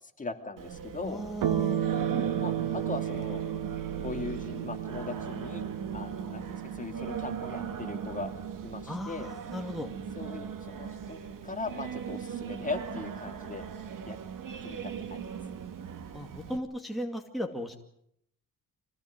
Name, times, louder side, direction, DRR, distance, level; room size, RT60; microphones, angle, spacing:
voice 1, 0.0-1.3 2.4-3.4 4.0-5.6 5.9-8.3 8.6-9.3 10.2-13.7 14.0-14.2 14.6-15.3, left 3 dB, 20° left, 5 dB, 2.8 m, -39 dB
Singing, 0.6-16.6, right 7 dB, 65° right, 2.3 m, -39 dB
voice 2, 1.0-1.8 8.9-9.9 16.1-17.7, equal, ahead, 1 dB, 2.3 m, -36 dB
sound 1, 1.4-10.3, right 10 dB, 85° right, 2.0 m, -34 dB
25.5 x 17.5 x 9.5 m, 0.73 s
cardioid pair, 120°, 35 cm